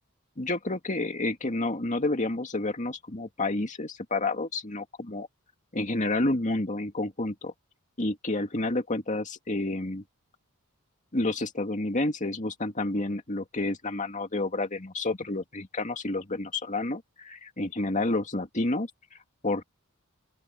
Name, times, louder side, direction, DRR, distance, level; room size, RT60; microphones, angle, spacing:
voice 1, 0.4-5.3 5.7-7.5 8.0-10.0 11.1-18.9 19.4-19.6, left 2 dB, 35° left, 2.2 m, -29 dB
open air
head